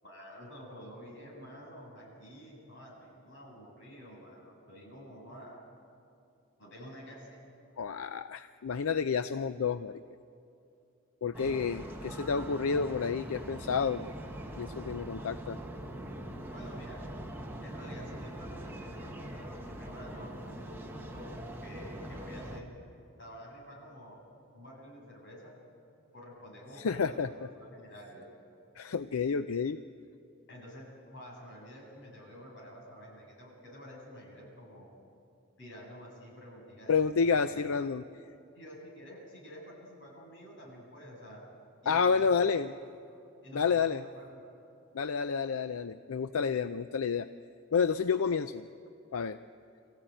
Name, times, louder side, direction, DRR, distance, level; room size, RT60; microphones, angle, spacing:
voice 1, 0.0-5.6 6.6-7.4 11.3-11.6 15.2-15.3 16.5-17.0 17.6-22.7 23.2-24.2 24.5-25.5 26.1-28.3 30.5-34.9 35.6-37.8 38.5-41.4 41.8-42.7 43.4-44.4, equal, 60° left, -3 dB, 7.7 m, -49 dB
voice 2, 7.8-10.0 11.2-14.1 14.6-15.6 26.8-27.3 28.8-29.8 36.9-38.0 41.9-42.7 43.5-44.0 44.9-47.3 47.7-48.7 49.1-49.4, left 5 dB, 85° left, 11 dB, 0.5 m, -30 dB
sound 1, 11.3-22.6, right 1 dB, 10° right, 1.4 m, -42 dB
26.0 x 15.5 x 9.1 m, 2.6 s
head